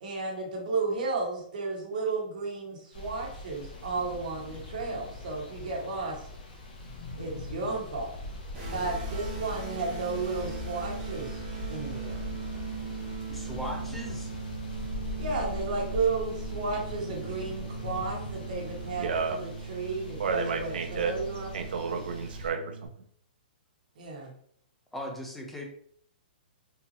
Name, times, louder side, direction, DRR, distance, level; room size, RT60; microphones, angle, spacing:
voice 1, 0.0-6.3 7.2-8.1 8.7-11.4 11.7-12.2 15.2-21.7 24.0-24.3, right 3 dB, 50° right, -1 dB, 1.2 m, -33 dB
sound 1, 2.9-22.5, left 1 dB, 55° left, 1.1 m, -41 dB
sound 2, 3.7-19.3, left 4 dB, 85° left, 0.6 m, -46 dB
sound 3, 8.5-22.9, right 5 dB, 20° right, 1.0 m, -40 dB
voice 2, 13.3-14.3 24.9-25.6, equal, ahead, 0 dB, 0.4 m, -38 dB
voice 3, 18.9-19.4 20.2-21.1 21.5-22.9, right 5 dB, 70° right, 5 dB, 0.5 m, -31 dB
3.7 x 2.7 x 2.8 m, 0.62 s
hypercardioid pair, 180°, 5 cm